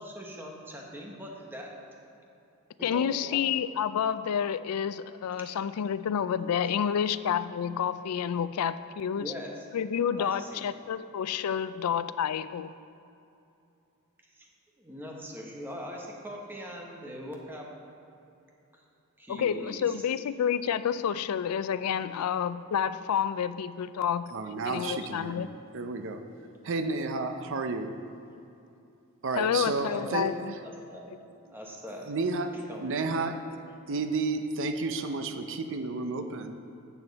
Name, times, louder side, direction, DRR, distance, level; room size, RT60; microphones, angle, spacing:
voice 1, 0.0-1.7 2.8-3.4 9.1-9.6 10.2-10.6 14.3-14.5 14.8-17.7 18.7-18.8 19.2-19.9 29.8-30.2 30.6-31.1 31.5-32.1 32.5-32.9, equal, 10° right, -1 dB, 1.1 m, -41 dB
voice 2, 2.8-9.3 9.7-12.7 19.3-24.3 24.7-25.5 29.4-30.5, left 8 dB, 85° left, 14 dB, 0.4 m, -29 dB
voice 3, 24.3-26.2 26.6-27.9 29.2-30.5 32.0-33.4 33.9-36.6, right 3 dB, 60° right, 7 dB, 0.6 m, -32 dB
12.0 x 7.0 x 4.1 m, 2.7 s
head